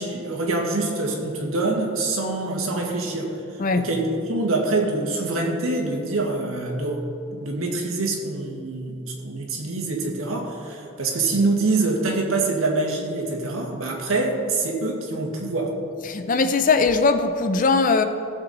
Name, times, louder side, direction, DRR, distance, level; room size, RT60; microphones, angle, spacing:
voice 1, 0.0-3.3 3.8-7.1 7.3-15.7, right 2 dB, 90° right, 0 dB, 1.8 m, -25 dB
voice 2, 16.1-18.0, left 4 dB, 40° left, 9 dB, 0.5 m, -20 dB
15.5 x 7.1 x 4.2 m, 2.7 s
head